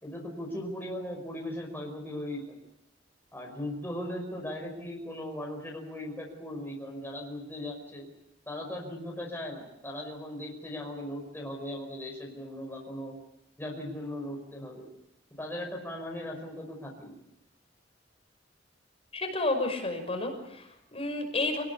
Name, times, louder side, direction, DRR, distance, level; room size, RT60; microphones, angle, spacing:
voice 1, 0.0-2.6 3.3-8.1 8.5-13.2 13.6-14.9 15.4-17.2, left 1 dB, 10° left, -1 dB, 5.3 m, -38 dB
voice 2, 19.1-21.6, left 2 dB, 35° left, 4 dB, 6.0 m, -31 dB
28.0 x 19.5 x 8.4 m, 0.82 s
head